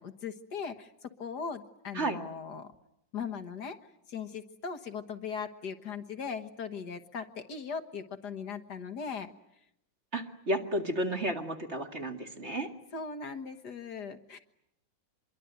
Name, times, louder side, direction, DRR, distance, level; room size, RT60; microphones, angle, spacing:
voice 1, 0.0-2.7 3.1-3.8 4.1-9.3 12.9-14.4, left 6 dB, 60° left, 8 dB, 1.9 m, -39 dB
voice 2, 10.1-12.7, right 1 dB, 35° right, 5 dB, 2.2 m, -32 dB
26.0 x 22.5 x 9.4 m, 0.82 s
omnidirectional pair, 2.0 m